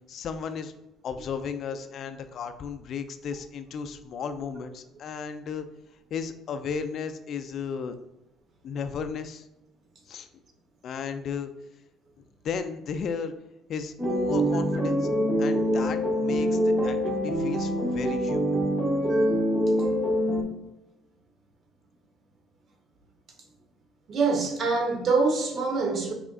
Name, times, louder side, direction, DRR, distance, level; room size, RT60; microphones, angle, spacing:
voice 1, 0.1-0.7 1.0-5.7 6.1-8.0 8.6-9.5 10.1-10.3 10.8-11.5 12.4-13.3 13.7-15.1 15.4-18.6, left 6 dB, 55° left, 9 dB, 0.3 m, -34 dB
sound 1, 14.0-20.4, equal, 15° right, 0.8 m, -25 dB
voice 2, 19.1-19.4 24.1-26.1, right 4 dB, 50° right, 2 dB, 0.9 m, -25 dB
4.2 x 3.6 x 2.3 m, 0.89 s
cardioid pair, 100°, 0 cm